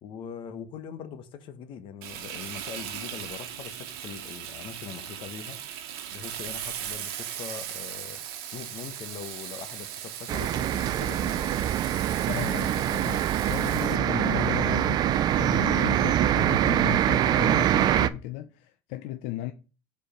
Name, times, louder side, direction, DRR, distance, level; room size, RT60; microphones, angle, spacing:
voice 1, 0.0-5.6 6.1-8.2 8.5-11.7 13.6-13.8, left 7 dB, 45° left, 0.9 m, -42 dB
Frying (food), 2.0-14.0, right 10 dB, 90° right, 1.1 m, -38 dB
sound 1, 10.3-18.1, right 11 dB, 35° right, 0.4 m, -24 dB
voice 2, 12.3-19.5, left 15 dB, 65° left, 0.5 m, -35 dB
5.1 x 4.6 x 5.7 m
cardioid pair, 155°, 12 cm